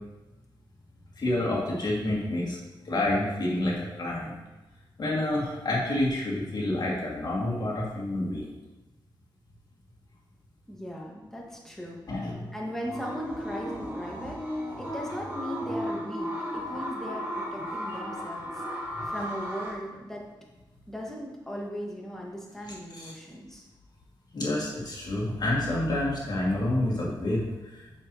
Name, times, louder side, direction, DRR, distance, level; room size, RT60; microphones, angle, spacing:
voice 1, 1.2-2.6 2.8-4.3 5.0-8.5 12.1-12.5 19.0-19.1 22.9-23.1 24.3-27.9, left 1 dB, 50° left, -5 dB, 2.5 m, -28 dB
voice 2, 10.7-12.3 12.5-14.4 14.8-20.3 20.9-23.7, equal, 5° left, -2 dB, 1.9 m, -38 dB
sound 1, 12.8-19.7, equal, 20° right, 2.5 m, -35 dB
7.5 x 6.4 x 3.1 m, 1.1 s
cardioid pair, 75°, 9 cm